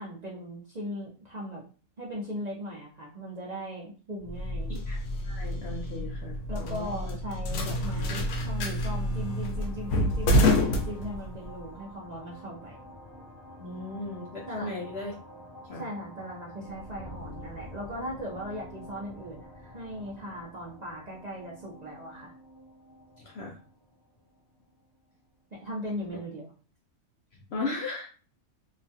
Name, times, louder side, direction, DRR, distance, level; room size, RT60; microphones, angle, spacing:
voice 1, 0.0-1.6 2.0-4.7 6.5-12.8 14.5-14.7 15.7-22.3 25.5-26.5, equal, 55° right, -4 dB, 0.4 m, -38 dB
sound 1, 4.3-11.6, left 1 dB, 85° left, 1.1 m, -28 dB
voice 2, 5.2-7.1 13.6-15.1 15.7-15.8 23.2-23.5 27.5-28.1, left 2 dB, 65° left, -1 dB, 0.6 m, -36 dB
sound 2, 7.5-25.1, left 1 dB, 15° left, 1.1 m, -47 dB
2.9 x 2.3 x 2.7 m, 0.38 s
omnidirectional pair, 1.5 m